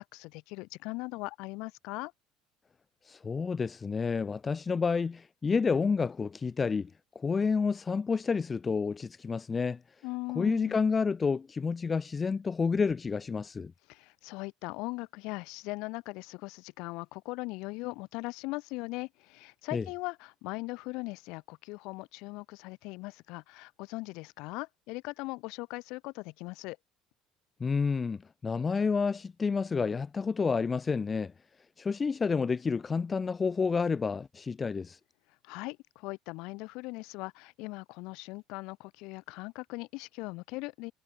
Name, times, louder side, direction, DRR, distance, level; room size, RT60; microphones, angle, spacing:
voice 1, 0.0-2.1 10.0-10.8 13.9-26.8 35.4-40.9, left 24 dB, 70° left, 2.3 m, -39 dB
voice 2, 3.1-6.9 7.2-9.8 10.4-13.7 19.7-19.9 27.6-31.3 31.8-35.0, left 5 dB, 20° left, 0.4 m, -29 dB
cardioid pair, 160°, 0 cm